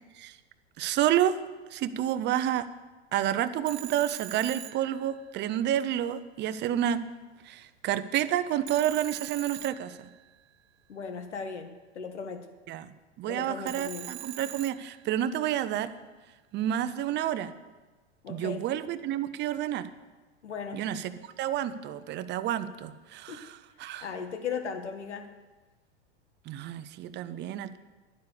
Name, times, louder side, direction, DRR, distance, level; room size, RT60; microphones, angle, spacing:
voice 1, 0.8-1.4 1.7-2.7 3.1-7.0 7.4-10.1 12.7-12.9 13.2-15.9 16.5-17.5 18.3-19.9 20.7-24.1 26.5-27.8, right 11 dB, 30° right, 12 dB, 0.8 m, -29 dB
Telephone, 3.7-5.6 8.7-10.5 13.7-15.3, right 14 dB, 75° right, 0.6 m, -43 dB
voice 2, 10.9-12.5 13.3-14.1 18.2-18.6 20.4-20.9 23.3-23.4 24.0-25.3, left 6 dB, 85° left, 7 dB, 1.6 m, -37 dB
11.5 x 9.5 x 6.9 m, 1.2 s
hypercardioid pair, 105°, 34 cm